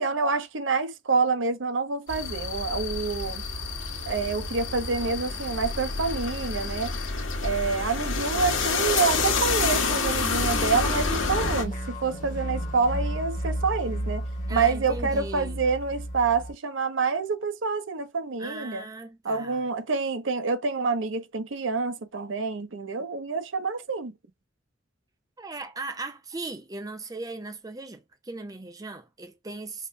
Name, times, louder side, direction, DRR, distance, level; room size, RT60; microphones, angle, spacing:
voice 1, 0.0-3.4 4.1-6.9 7.4-14.2 14.5-18.9 19.2-24.1, right 4 dB, 80° right, 0.7 m, -27 dB
sound 1, 2.1-11.6, left 4 dB, 90° left, 1.2 m, -28 dB
sound 2, 10.3-16.5, right 1 dB, 40° left, 1.1 m, -33 dB
voice 2, 14.5-15.6 18.4-19.6 25.4-29.9, right 3 dB, 20° right, 0.6 m, -38 dB
5.2 x 2.1 x 2.6 m
head